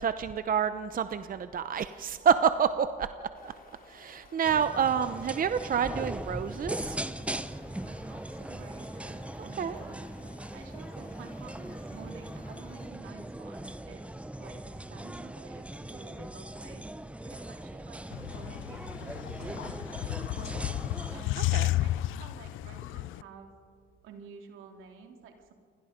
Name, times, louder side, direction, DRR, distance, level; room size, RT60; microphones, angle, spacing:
voice 1, 0.0-3.1 3.4-3.5 3.9-7.0 9.4-9.8 21.4-21.7, right 7 dB, 45° right, 11 dB, 0.8 m, -28 dB
sound 1, 3.3-12.9, left 3 dB, 45° left, 4.2 m, -56 dB
sound 2, 4.4-21.2, right 1 dB, 5° right, 0.9 m, -40 dB
voice 2, 7.8-10.1 10.5-14.0 14.4-19.7 20.3-23.5 24.0-25.5, right 6 dB, 85° right, 3 dB, 2.9 m, -50 dB
sound 3, 18.1-23.2, left 16 dB, 90° left, 0.5 m, -32 dB
29.0 x 22.5 x 5.2 m, 2.2 s
cardioid pair, 90°, 20 cm